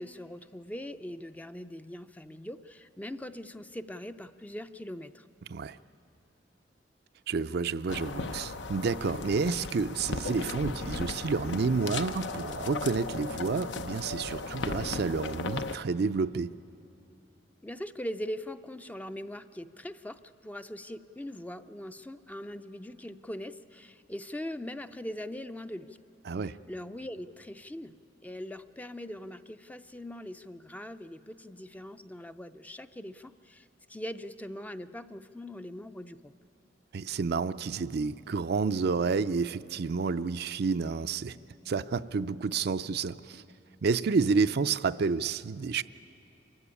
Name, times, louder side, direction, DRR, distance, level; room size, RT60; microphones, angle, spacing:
voice 1, 0.0-5.3 17.6-26.0 26.7-27.9 28.2-36.3, left 1 dB, 10° left, 10 dB, 0.5 m, -41 dB
voice 2, 7.3-16.5 26.3-26.6 36.9-41.4 41.7-43.4 43.8-45.8, right 4 dB, 60° right, 12 dB, 0.5 m, -30 dB
sound 1, 7.9-15.8, left 3 dB, 75° left, 0.8 m, -36 dB
26.0 x 15.5 x 9.9 m, 2.8 s
head